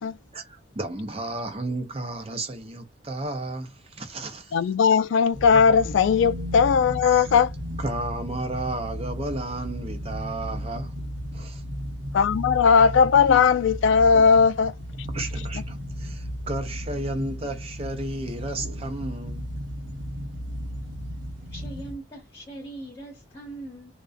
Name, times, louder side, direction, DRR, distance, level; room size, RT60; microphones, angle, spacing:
voice 1, 0.3-4.6 5.5-5.6 7.0-7.3 7.8-11.0 11.3-11.6 14.1-14.3 15.1-19.5, right 2 dB, 30° right, 0.5 m, -33 dB
voice 2, 4.5-7.5 12.1-14.7, left 6 dB, 75° left, 0.3 m, -18 dB
sound 1, 5.3-21.9, equal, 75° right, 0.8 m, -35 dB
voice 3, 21.5-23.9, right 2 dB, 30° left, 1.1 m, -40 dB
2.3 x 2.2 x 2.4 m
head